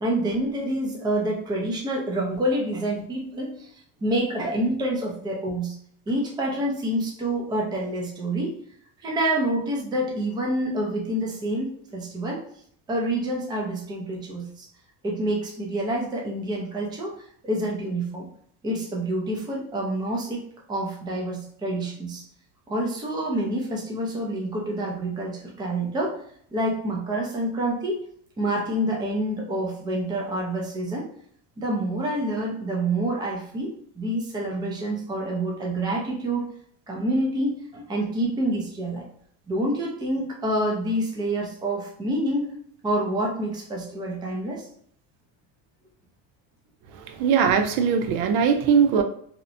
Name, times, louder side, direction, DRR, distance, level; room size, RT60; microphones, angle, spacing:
voice 1, 0.0-3.7 4.0-5.7 6.1-8.6 9.0-12.4 12.9-14.7 15.0-17.1 17.4-18.3 18.6-20.4 20.7-22.2 22.7-26.2 26.5-28.0 28.4-31.1 31.6-36.4 36.9-39.0 39.5-42.5 42.8-44.7, right 1 dB, 10° right, -2 dB, 0.4 m, -27 dB
voice 2, 46.9-49.0, right 6 dB, 75° right, 7 dB, 0.6 m, -20 dB
2.9 x 2.0 x 2.5 m, 0.62 s
cardioid pair, 130°, 50 cm